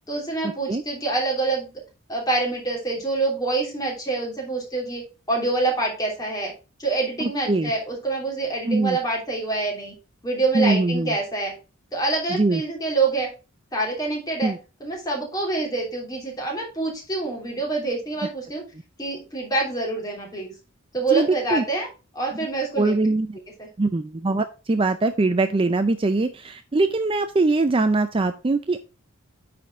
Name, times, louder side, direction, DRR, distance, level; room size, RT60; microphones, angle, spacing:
voice 1, 0.1-1.7 2.1-5.0 5.3-6.5 6.8-9.9 10.2-11.5 11.9-13.3 13.7-14.5 14.8-18.6 19.0-20.5 20.9-21.9 22.1-23.0 23.6-23.7, right 3 dB, 20° left, -1 dB, 3.1 m, -26 dB
voice 2, 7.2-7.7 8.6-9.0 10.5-11.2 12.3-12.6 14.4-14.6 21.1-21.6 22.8-23.3 23.8-28.8, right 3 dB, 25° right, 10 dB, 0.4 m, -22 dB
9.2 x 4.3 x 4.8 m, 0.31 s
head